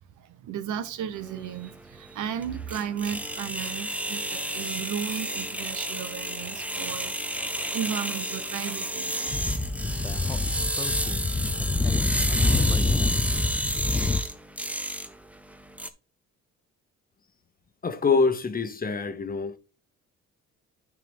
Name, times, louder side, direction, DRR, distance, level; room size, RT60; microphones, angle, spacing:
voice 1, 0.2-9.4 12.5-12.6, right 8 dB, 80° right, 1.0 m, -35 dB
sound 1, 1.2-15.9, right 1 dB, 5° right, 0.9 m, -31 dB
Speech / Wind, 9.3-14.2, left 3 dB, 10° left, 0.4 m, -26 dB
voice 2, 17.8-19.6, left 4 dB, 30° left, 1.0 m, -25 dB
9.7 x 4.7 x 3.5 m
cardioid pair, 90°, 30 cm